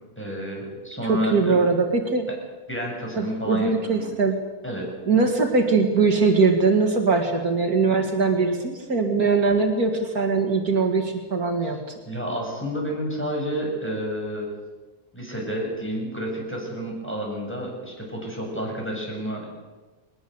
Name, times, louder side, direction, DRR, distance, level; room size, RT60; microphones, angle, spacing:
voice 1, 0.2-1.6 2.7-4.1 4.6-4.9 12.1-14.5 15.1-19.5, equal, 5° left, -1 dB, 7.5 m, -30 dB
voice 2, 1.1-2.3 3.2-4.4 5.1-11.8, right 4 dB, 70° right, 4 dB, 2.7 m, -21 dB
21.5 x 20.5 x 8.0 m, 1.2 s
omnidirectional pair, 1.6 m